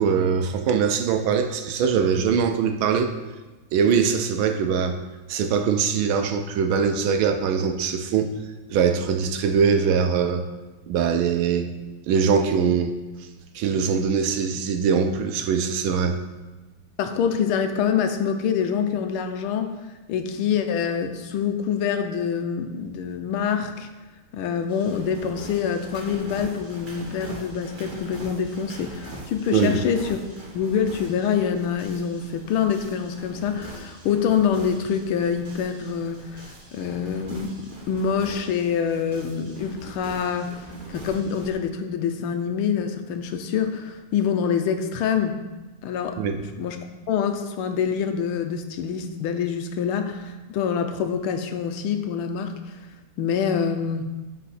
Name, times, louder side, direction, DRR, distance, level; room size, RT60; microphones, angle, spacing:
voice 1, 0.0-3.1 3.7-5.0 5.3-8.4 8.7-10.4 10.9-11.7 12.1-13.0 13.5-16.2 29.5-29.8 46.2-46.4, right 6 dB, 75° right, 6 dB, 1.3 m, -22 dB
voice 2, 17.0-19.7 20.1-23.9 24.3-30.2 30.5-40.6 40.9-45.4 45.8-46.2 46.6-52.8 53.2-54.0, left 7 dB, 80° left, 7 dB, 1.5 m, -26 dB
sound 1, 24.7-41.5, right 1 dB, 30° right, 0.9 m, -42 dB
10.0 x 4.2 x 4.2 m, 1.2 s
omnidirectional pair, 2.4 m